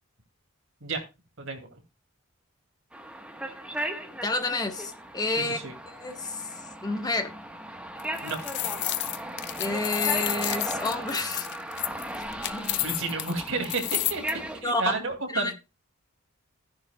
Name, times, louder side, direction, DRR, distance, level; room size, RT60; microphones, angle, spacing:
voice 1, 1.4-1.8 5.3-5.7 8.2-8.4 12.8-15.5, right 3 dB, 60° right, 2.4 m, -32 dB
sound 1, 2.9-14.6, right 1 dB, 5° right, 1.2 m, -37 dB
voice 2, 4.2-6.4 6.8-7.3 9.6-11.5 12.5-12.8 14.6-14.8 15.3-15.5, left 2 dB, 20° left, 1.1 m, -30 dB
sound 2, 8.0-14.3, left 14 dB, 55° left, 0.6 m, -31 dB
14.0 x 10.5 x 2.3 m
head